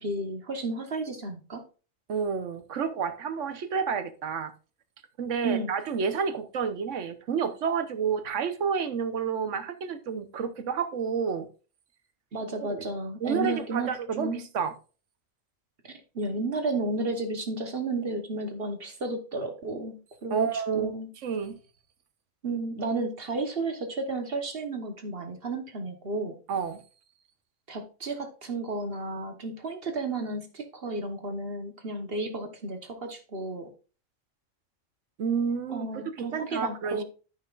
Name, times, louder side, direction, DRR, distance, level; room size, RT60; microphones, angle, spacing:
voice 1, 0.0-1.6 5.4-5.7 12.3-13.9 14.2-14.4 15.8-21.1 22.4-26.4 27.7-33.7 35.7-37.0, right 2 dB, 50° right, 1.3 m, -33 dB
voice 2, 2.1-4.5 5.2-11.5 12.6-12.8 13.2-14.7 20.3-20.9 21.2-21.5 26.5-26.8 35.2-37.0, right 6 dB, 75° right, 1.2 m, -30 dB
13.0 x 5.8 x 2.4 m
omnidirectional pair, 1.3 m